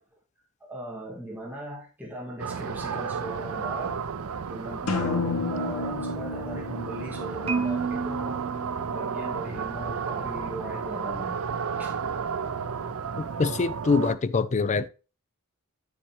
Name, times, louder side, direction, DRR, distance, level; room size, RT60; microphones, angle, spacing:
voice 1, 0.6-4.0 4.5-8.4 8.9-11.4 11.8-11.9, right 1 dB, 10° right, 1.9 m, -38 dB
sound 1, 2.4-14.2, right 6 dB, 75° right, 0.6 m, -33 dB
sound 2, 4.9-8.7, left 3 dB, 80° left, 1.2 m, -32 dB
Marimba xylophone, 7.5-9.7, right 5 dB, 25° right, 0.8 m, -32 dB
voice 2, 13.2-14.9, left 4 dB, 35° left, 0.4 m, -24 dB
8.0 x 7.2 x 3.0 m
head